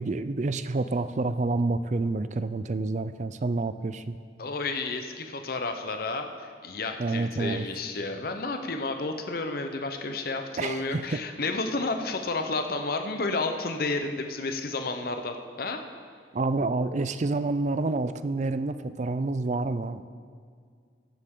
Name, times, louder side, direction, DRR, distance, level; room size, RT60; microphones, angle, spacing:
voice 1, 0.0-4.2 7.0-7.7 10.6-11.2 16.3-20.0, right 3 dB, 40° right, 12 dB, 0.4 m, -28 dB
voice 2, 4.4-15.8, left 3 dB, 55° left, 6 dB, 0.8 m, -31 dB
15.0 x 11.5 x 3.8 m, 2.1 s
head